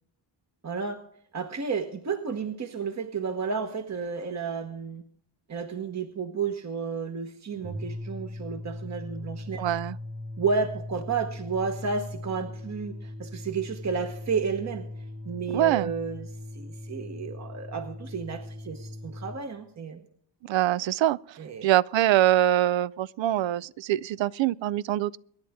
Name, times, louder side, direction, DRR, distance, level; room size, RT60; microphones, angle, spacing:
voice 1, 0.6-1.0 1.3-5.0 5.5-9.6 10.4-14.8 15.2-20.0 21.4-21.7, right 5 dB, 40° right, 1.2 m, -32 dB
sound 1, 7.5-19.4, left 1 dB, 60° right, 4.6 m, -39 dB
voice 2, 9.6-10.0 15.5-15.9 20.4-25.1, right 13 dB, 85° right, 0.6 m, -24 dB
25.0 x 10.5 x 3.6 m
wide cardioid pair, 115°, 44 cm